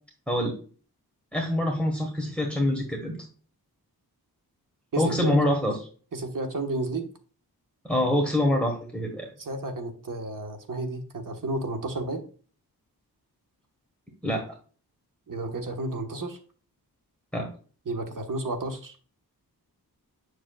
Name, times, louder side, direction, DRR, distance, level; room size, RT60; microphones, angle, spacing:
voice 1, 1.3-3.2 5.0-5.8 7.8-9.3 14.2-14.5 17.3-17.5, left 1 dB, 5° left, 0 dB, 1.5 m, -25 dB
voice 2, 4.9-5.6 6.1-7.1 9.4-12.2 15.3-16.4 17.8-19.0, right 2 dB, 55° right, 5 dB, 1.4 m, -32 dB
7.4 x 6.2 x 2.3 m, 0.40 s
cardioid pair, 65°, 38 cm